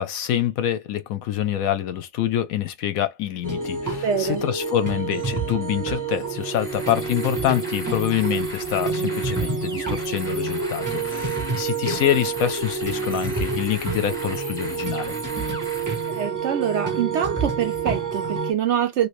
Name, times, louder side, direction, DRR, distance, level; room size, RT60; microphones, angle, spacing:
voice 1, 0.0-15.1, left 11 dB, 70° left, 0.9 m, -26 dB
sound 1, 3.4-18.5, right 4 dB, 25° right, 0.4 m, -28 dB
voice 2, 4.0-4.4 9.7-10.0 16.1-19.1, right 9 dB, 75° right, 0.6 m, -25 dB
sound 2, 6.4-16.3, equal, ahead, 1.0 m, -38 dB
3.1 x 2.5 x 3.0 m
omnidirectional pair, 1.7 m